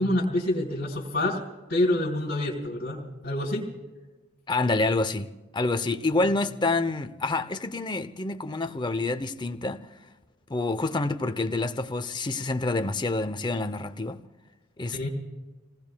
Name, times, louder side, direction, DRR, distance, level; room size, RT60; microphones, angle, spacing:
voice 1, 0.0-1.4 1.7-3.6 14.9-15.1, left 1 dB, 55° left, 3.3 m, -27 dB
voice 2, 4.5-5.3 5.5-9.9 10.5-14.2 14.8-15.1, left 2 dB, 25° left, 0.6 m, -27 dB
29.0 x 19.0 x 2.3 m
head